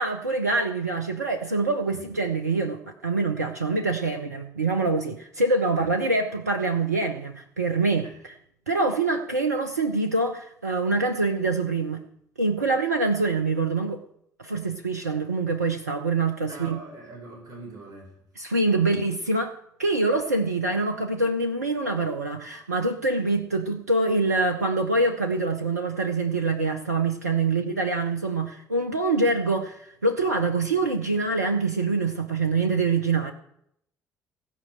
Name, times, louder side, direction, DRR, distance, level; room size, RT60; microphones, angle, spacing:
voice 1, 0.0-8.1 8.7-12.0 12.4-14.0 14.4-16.8 18.4-33.3, right 3 dB, 85° right, 4 dB, 0.6 m, -25 dB
voice 2, 16.5-18.2 18.8-19.0, right 2 dB, 50° right, 0 dB, 4.2 m, -43 dB
16.0 x 5.5 x 7.5 m, 0.75 s
figure-of-eight pair, 50°, 8 cm